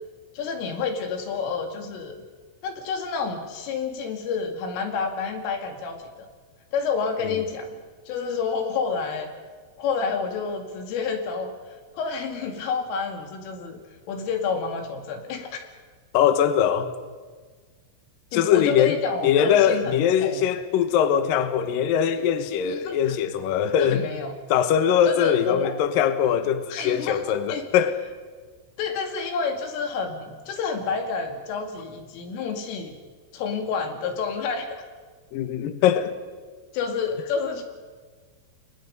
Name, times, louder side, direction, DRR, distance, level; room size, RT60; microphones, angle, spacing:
voice 1, 0.3-2.2 2.6-6.3 6.7-7.8 8.1-9.3 9.8-13.8 14.1-15.6 18.3-19.9 20.2-20.4 22.6-23.1 23.8-24.3 25.0-25.7 26.7-27.6 28.8-32.9 33.3-34.8 36.7-37.6, left 5 dB, 90° left, 5.0 m, -29 dB
voice 2, 16.1-17.0 18.3-19.0 19.2-24.1 24.5-28.1 35.3-36.2, left 9 dB, 70° left, 2.3 m, -21 dB
30.0 x 23.5 x 5.5 m
omnidirectional pair, 5.6 m